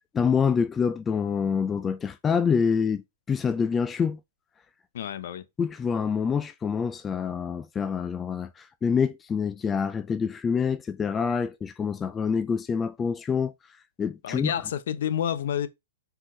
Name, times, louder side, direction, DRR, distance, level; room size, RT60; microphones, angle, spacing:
voice 1, 0.1-4.2 5.6-13.5 14.0-14.5, left 6 dB, 15° left, 0.4 m, -26 dB
voice 2, 4.9-5.4 14.2-15.7, left 9 dB, 60° left, 0.9 m, -29 dB
6.0 x 4.6 x 3.8 m
figure-of-eight pair, 115°, 0 cm